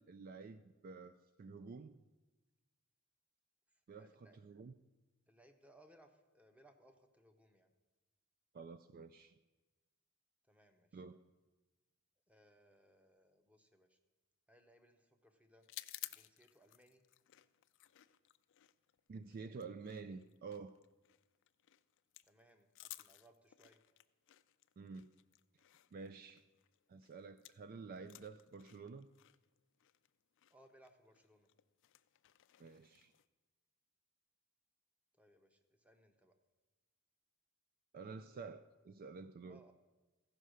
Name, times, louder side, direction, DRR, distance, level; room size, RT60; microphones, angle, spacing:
voice 1, 0.0-2.0 3.9-4.7 8.5-9.4 10.9-11.2 19.1-20.8 24.8-25.1 25.9-26.4 26.9-29.1 32.6-33.1 37.9-39.6, right 4 dB, 40° right, 11 dB, 0.3 m, -50 dB
voice 2, 3.7-4.4 5.3-7.7 10.4-11.0 12.3-14.0 14.5-15.7 16.1-17.0 22.2-23.8 30.5-31.5 35.1-36.4 39.5-39.7, right 1 dB, 5° right, 6 dB, 0.8 m, -67 dB
sound 1, 15.6-27.7 28.0-33.3, left 17 dB, 60° left, 0.4 m, -57 dB
15.0 x 5.5 x 6.3 m, 1.2 s
head